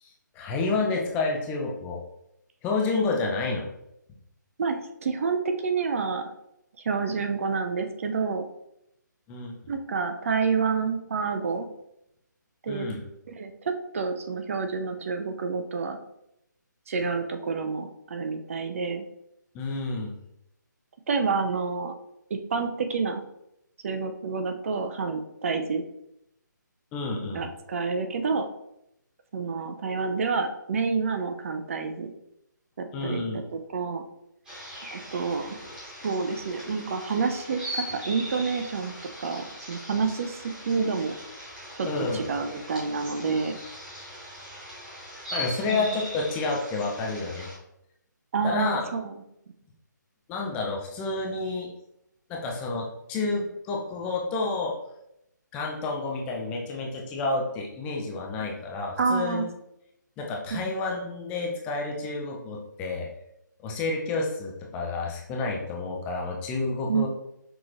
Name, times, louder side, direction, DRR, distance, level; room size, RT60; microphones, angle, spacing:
voice 1, 0.0-2.0 2.6-3.7 9.3-9.6 12.7-13.0 19.5-20.1 26.9-27.4 32.9-33.4 41.8-42.3 45.3-47.5 48.4-48.9 50.3-51.7 52.3-54.7 55.5-59.4 60.2-63.1 63.6-67.1, left 3 dB, 15° left, -1 dB, 0.5 m, -29 dB
voice 2, 4.6-6.2 6.8-8.5 9.7-11.7 12.6-12.9 13.3-16.0 16.9-19.1 21.1-21.9 22.3-23.2 23.8-25.8 27.3-28.5 29.3-32.1 32.8-34.0 34.9-35.6 36.0-38.9 39.2-41.2 41.7-43.6 45.7-45.8 48.3-49.1 59.0-59.4 60.5-60.7 66.9-67.0, right 5 dB, 45° right, 6 dB, 0.5 m, -28 dB
sound 1, 34.4-47.5, equal, 10° right, 1.5 m, -40 dB
6.0 x 3.0 x 2.5 m, 0.80 s
figure-of-eight pair, 150°, 10 cm